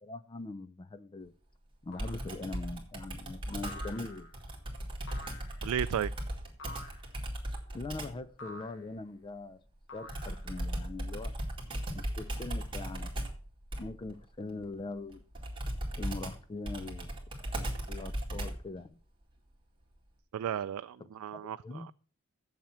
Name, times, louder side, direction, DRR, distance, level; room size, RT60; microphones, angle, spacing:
voice 1, 0.0-1.3 1.8-4.3 7.7-9.6 9.9-11.4 11.9-13.1 13.8-15.2 15.9-17.1 17.9-19.0 21.0-21.9, left 3 dB, 25° left, 0.4 m, -42 dB
sound 1, 1.9-2.3 3.6-4.4 5.1-5.7 6.6-7.1 8.4-8.9 9.9-10.6, left 1 dB, 60° left, 1.4 m, -48 dB
Computer keyboard, 2.0-8.2 10.1-18.7, right 1 dB, 25° right, 2.2 m, -38 dB
voice 2, 5.6-6.1 20.3-21.9, right 9 dB, 90° right, 0.3 m, -34 dB
7.4 x 7.3 x 5.7 m
head